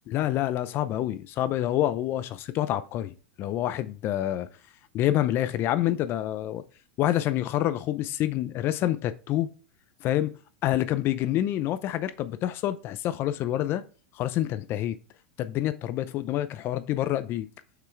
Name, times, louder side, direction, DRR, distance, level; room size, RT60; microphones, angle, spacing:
voice 1, 0.1-4.5 4.9-6.6 7.0-9.5 10.0-10.3 10.6-13.8 14.1-15.0 15.4-17.5, left 13 dB, 45° left, 0.6 m, -27 dB
6.0 x 5.6 x 4.6 m
hypercardioid pair, 95°, 5 cm